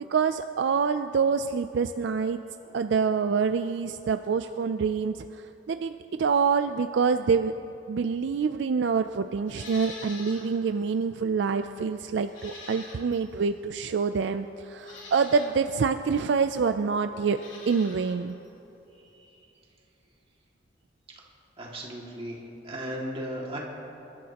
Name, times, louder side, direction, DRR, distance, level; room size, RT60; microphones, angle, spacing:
voice 1, 0.1-2.4 2.7-7.5 7.9-17.4 17.7-18.3, right 5 dB, 70° right, 9 dB, 0.4 m, -26 dB
Livestock farm animals working animals, 9.5-10.5 10.9-11.0 12.3-13.3 14.1-14.2 14.8-15.6 17.2-18.2 18.4-18.5, left 3 dB, 75° left, 3.1 m, -44 dB
voice 2, 21.6-22.4 22.6-23.6, right 1 dB, 30° right, -3 dB, 2.2 m, -36 dB
27.5 x 12.5 x 2.9 m, 3.0 s
head